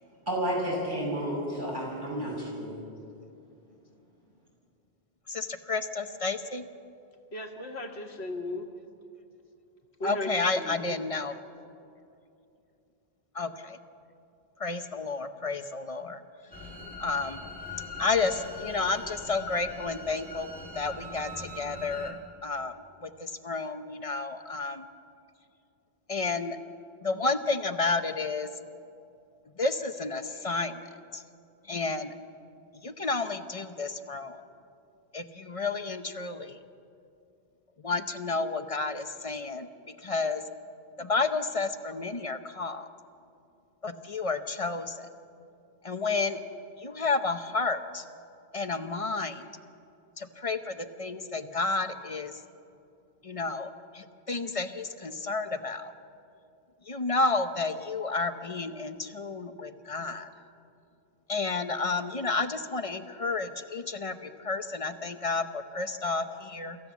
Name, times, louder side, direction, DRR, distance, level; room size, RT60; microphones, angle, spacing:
voice 1, 0.3-2.7, equal, 50° right, -4 dB, 6.6 m, -31 dB
voice 2, 5.3-6.6 10.0-11.4 13.3-13.5 14.6-16.2 17.0-17.4 18.0-20.5 20.8-22.2 22.4-22.7 23.0-24.8 26.1-26.6 27.0-28.5 29.6-30.8 31.1-31.2 31.7-32.1 32.8-34.4 35.1-36.6 37.8-39.7 40.0-40.4 41.0-42.9 43.8-45.1 45.8-46.4 46.8-48.0 48.5-49.4 50.2-52.3 53.2-55.9 56.9-60.3 61.3-66.8, left 3 dB, 35° left, 9 dB, 0.8 m, -31 dB
voice 3, 7.3-8.7 10.0-11.0, left 2 dB, 90° left, 4 dB, 2.0 m, -36 dB
sound 1, 16.5-22.1, left 3 dB, 10° left, 1.9 m, -41 dB
26.0 x 15.0 x 7.2 m, 2.6 s
omnidirectional pair, 1.1 m